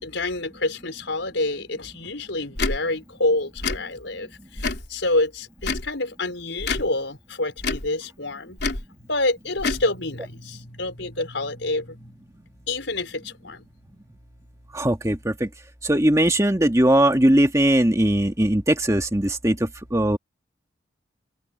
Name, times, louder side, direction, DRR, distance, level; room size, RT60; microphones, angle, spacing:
voice 1, 0.0-4.3 4.9-8.6 9.1-11.8 12.7-13.1 13.4-13.6, left 2 dB, 80° left, 5.0 m, -27 dB
Tick / Tick-tock, 2.5-2.8 3.6-3.8 4.6-4.9 5.6-5.9 6.6-6.9 7.6-7.9 8.6-8.8 9.6-9.8, left 3 dB, 60° left, 3.4 m, -26 dB
voice 2, 14.7-15.5 15.8-19.6 19.9-20.2, right 1 dB, 15° right, 1.7 m, -19 dB
open air
head